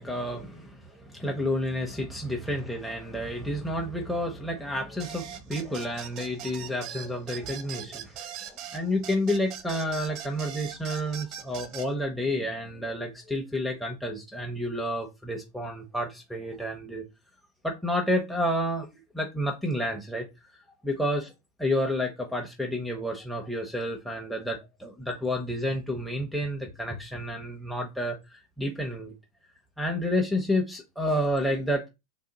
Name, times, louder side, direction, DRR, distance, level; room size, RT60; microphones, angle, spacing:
voice 1, 0.0-17.0 17.6-20.3 20.6-21.3 21.6-29.1 29.8-31.9, left 1 dB, ahead, 0.6 m, -30 dB
sound 1, 5.0-11.9, right 9 dB, 45° right, 0.4 m, -40 dB
2.8 x 2.1 x 3.8 m
figure-of-eight pair, 90°, 0 cm